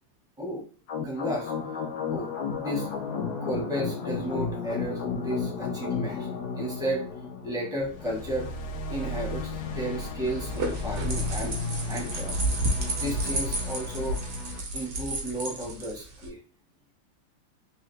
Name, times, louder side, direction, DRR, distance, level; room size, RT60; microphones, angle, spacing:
sound 1, 0.9-14.6, left 4 dB, 70° left, 0.9 m, -33 dB
voice 1, 0.9-1.5 2.1-2.3 2.6-2.9 3.4-6.3 6.5-7.1 7.4-8.5 8.9-11.6 11.8-12.3 12.9-14.2 14.7-16.4, right 1 dB, 5° right, -3 dB, 0.6 m, -33 dB
sound 2, 10.3-16.3, right 1 dB, 60° right, 0.9 m, -31 dB
3.8 x 2.8 x 3.2 m, 0.39 s
omnidirectional pair, 2.3 m